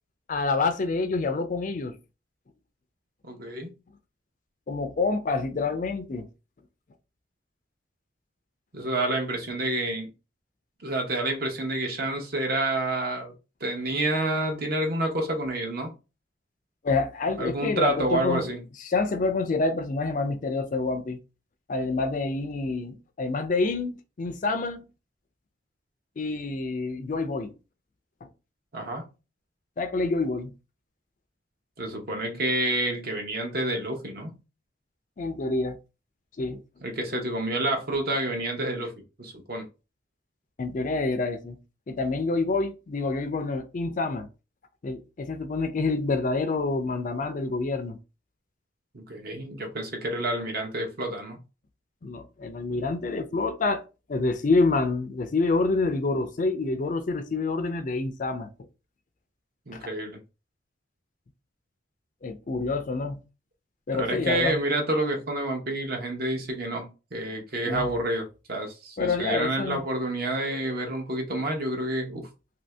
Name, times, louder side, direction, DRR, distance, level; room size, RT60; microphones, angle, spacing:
voice 1, 0.3-2.0 4.7-6.3 16.8-18.5 18.8-21.2 21.7-24.9 26.2-27.5 29.8-30.5 35.2-35.8 36.4-36.6 40.6-41.6 41.9-44.3 44.8-48.0 52.0-53.8 54.1-58.5 59.7-59.8 62.2-63.2 63.9-64.6 67.7-67.9 69.0-69.8, left 3 dB, 40° left, 0.4 m, -27 dB
voice 2, 3.3-3.7 8.7-10.1 10.8-13.3 13.6-15.9 17.4-18.6 28.7-29.1 31.8-34.4 36.8-38.9 39.2-39.6 48.9-51.4 59.7-60.2 63.9-72.3, right 1 dB, 50° right, 0.8 m, -29 dB
2.8 x 2.7 x 3.2 m
head